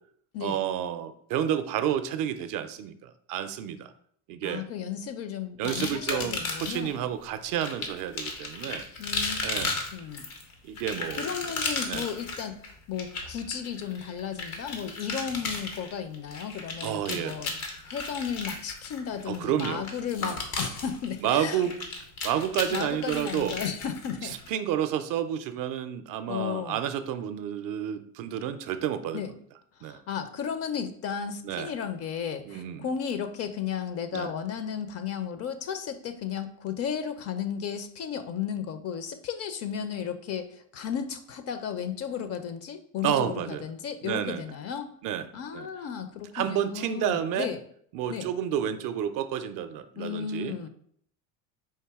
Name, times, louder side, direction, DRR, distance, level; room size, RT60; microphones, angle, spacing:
voice 1, 0.4-3.9 4.3-4.7 5.6-8.9 9.4-9.7 10.6-11.3 11.9-12.1 16.8-17.4 19.3-19.9 20.2-20.4 21.2-21.7 22.2-23.6 24.2-29.2 29.8-30.0 31.4-31.7 32.5-32.9 34.1-34.3 43.0-43.7 44.0-44.5 45.0-45.3 45.5-45.7 46.3-47.5 47.9-50.6, right 10 dB, 50° right, 10 dB, 0.5 m, -30 dB
voice 2, 4.4-7.1 9.0-9.4 9.9-10.3 11.2-21.6 22.7-24.4 26.3-26.8 29.1-29.3 29.8-44.9 45.3-47.6 48.1-48.3 50.0-50.7, left 7 dB, 40° left, 10 dB, 0.5 m, -34 dB
sound 1, 5.6-6.9 7.6-24.5, left 3 dB, 90° left, 1.0 m, -35 dB
4.6 x 2.7 x 3.5 m, 0.64 s
hypercardioid pair, 85°, 42 cm